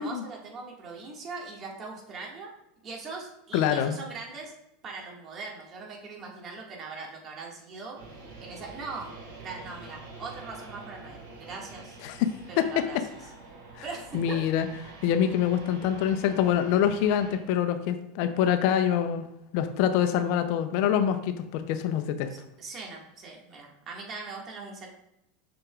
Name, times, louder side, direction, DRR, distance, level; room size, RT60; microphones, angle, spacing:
voice 1, 0.0-2.5 2.8-4.6 4.8-8.0 8.4-12.0 12.5-13.0 13.8-14.4 22.3-24.9, right 4 dB, 35° right, -1 dB, 1.9 m, -41 dB
voice 2, 3.5-4.0 12.0-12.8 14.1-14.7 15.0-19.3 19.5-22.3, left 9 dB, 60° left, 9 dB, 0.6 m, -25 dB
sound 1, 7.9-17.4, right 3 dB, 85° right, 2.3 m, -47 dB
7.5 x 6.1 x 2.4 m, 0.83 s
hypercardioid pair, 100°, 0 cm